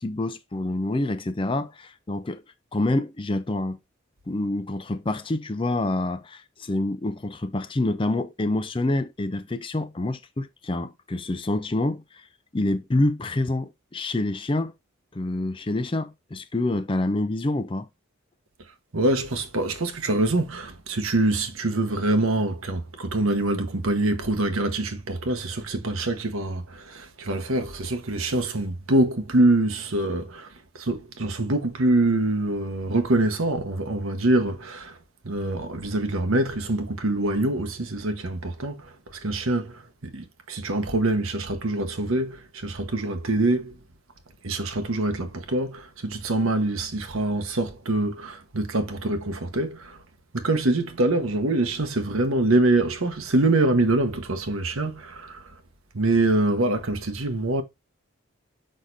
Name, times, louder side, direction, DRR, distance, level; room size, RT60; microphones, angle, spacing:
voice 1, 0.0-2.4 2.7-3.8 4.3-12.3 12.5-14.7 15.1-17.9, left 2 dB, 25° left, 0.4 m, -27 dB
voice 2, 18.9-35.0 35.2-38.9 39.2-43.8 44.4-50.0 50.3-55.4 55.9-57.6, right 2 dB, 80° right, 1.1 m, -25 dB
6.4 x 5.7 x 2.6 m
head